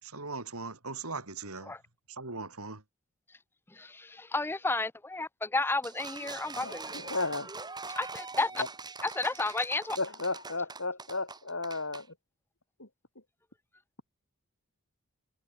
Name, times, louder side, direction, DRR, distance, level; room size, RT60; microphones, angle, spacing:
voice 1, 0.0-1.8 2.1-2.8, right 3 dB, 80° right, 5.3 m, -39 dB
voice 2, 3.7-6.9 8.0-8.6 9.0-10.0, left 3 dB, 10° left, 0.5 m, -32 dB
sound 1, 5.8-12.1, right 4 dB, 20° right, 7.0 m, -43 dB
voice 3, 6.6-7.5 8.6-8.7 10.0-12.1 12.8-12.9, left 3 dB, 65° left, 5.6 m, -34 dB
head